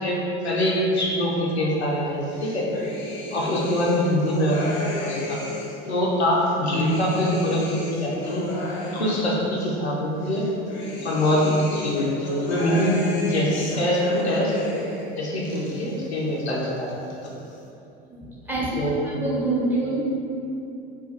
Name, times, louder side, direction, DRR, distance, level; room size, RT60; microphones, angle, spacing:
voice 1, 0.0-2.6 3.3-4.6 5.0-5.4 5.9-8.4 8.8-10.4 11.0-14.6 15.2-17.3 18.8-19.0, equal, 90° left, -4 dB, 0.5 m, -24 dB
sound 1, 2.2-5.9 6.3-9.8 10.2-15.1 15.3-16.2 16.5-17.3, left 3 dB, 40° left, 0.5 m, -34 dB
voice 2, 18.5-18.8 19.2-20.0, right 2 dB, 5° right, -7 dB, 0.7 m, -25 dB
2.4 x 2.2 x 3.8 m, 2.8 s
figure-of-eight pair, 70°, 31 cm